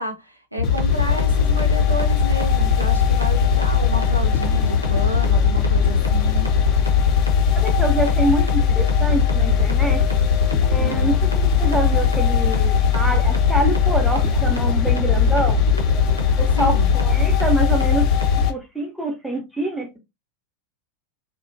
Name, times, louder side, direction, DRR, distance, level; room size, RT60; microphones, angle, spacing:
voice 1, 0.0-6.5 10.7-11.2 16.5-16.9, right 1 dB, 85° right, 0.6 m, -31 dB
sound 1, 0.6-18.5, left 5 dB, 85° left, 0.6 m, -20 dB
sound 2, 0.6-18.5, left 7 dB, 35° left, 0.4 m, -22 dB
voice 2, 7.5-10.0 10.7-15.6 16.4-18.1 18.4-20.0, right 2 dB, 5° right, 0.7 m, -25 dB
2.8 x 2.2 x 2.5 m
figure-of-eight pair, 90°, 0 cm